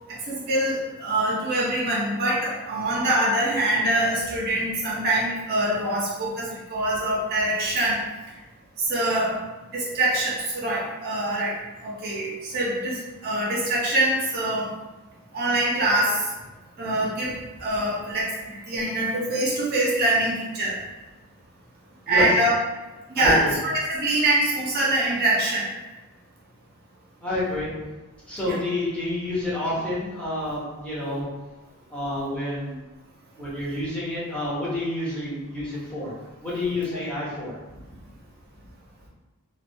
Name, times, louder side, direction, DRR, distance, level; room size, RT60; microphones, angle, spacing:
voice 1, 0.1-8.0 8.9-9.4 9.7-11.5 11.8-13.0 13.2-14.7 15.3-16.2 16.8-17.3 17.6-18.3 18.7-20.8 22.1-22.6 23.1-25.7 28.5-28.6 36.9-37.0, right 1 dB, 45° right, -4 dB, 0.5 m, -24 dB
voice 2, 23.1-23.5 27.2-27.7 28.3-31.3 31.9-32.8 33.4-36.1 36.4-37.8, left 1 dB, 5° left, -9 dB, 0.7 m, -28 dB
2.2 x 2.1 x 2.6 m, 1.1 s
head